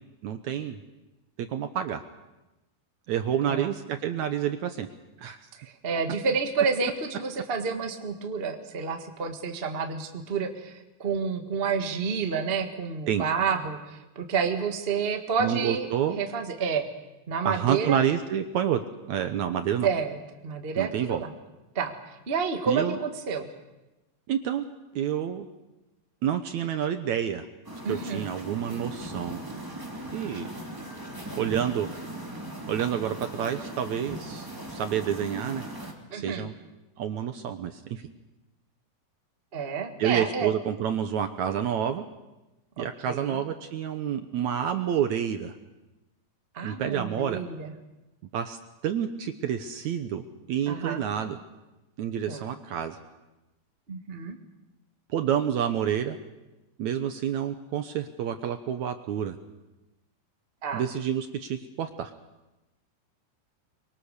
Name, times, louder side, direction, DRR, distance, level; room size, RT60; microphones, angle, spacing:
voice 1, 0.2-0.8 1.4-2.0 3.1-4.9 5.2-5.4 13.1-13.2 15.4-16.2 17.5-18.8 19.1-19.9 20.8-21.2 22.7-23.0 24.3-24.6 24.9-25.5 26.2-27.5 27.9-29.4 30.1-30.5 31.4-31.9 32.7-35.7 36.1-36.5 37.0-38.0 40.0-42.0 42.8-45.5 46.6-47.4 48.3-48.6 48.8-51.4 52.0-53.0 55.1-56.2 56.8-59.4 60.7-62.1, right 9 dB, 70° right, 8 dB, 1.9 m, -28 dB
voice 2, 5.5-15.9 16.1-16.9 17.3-18.1 19.8-20.2 20.4-21.3 21.7-23.5 27.8-28.3 36.1-36.4 39.5-40.5 42.8-43.4 46.5-47.7 50.7-51.0 52.3-52.4 53.9-54.4 60.6-60.8, right 5 dB, 35° right, 4 dB, 1.0 m, -29 dB
sound 1, 27.6-35.9, right 1 dB, 5° right, 2.4 m, -39 dB
24.0 x 24.0 x 6.7 m, 1.0 s
omnidirectional pair, 4.1 m